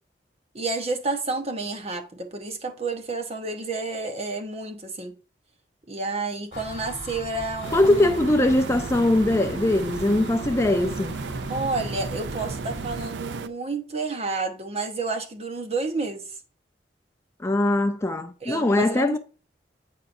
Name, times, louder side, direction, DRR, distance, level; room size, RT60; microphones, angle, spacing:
voice 1, 0.5-5.1 5.9-8.1 11.5-16.3 18.4-19.2, right 3 dB, 35° right, 0.9 m, -30 dB
sound 1, 6.5-13.0, left 1 dB, 65° left, 1.2 m, -37 dB
sound 2, 7.6-13.5, right 5 dB, 70° right, 0.4 m, -35 dB
voice 2, 7.7-11.1 17.4-19.2, left 1 dB, 15° left, 0.4 m, -21 dB
8.4 x 4.8 x 2.5 m
head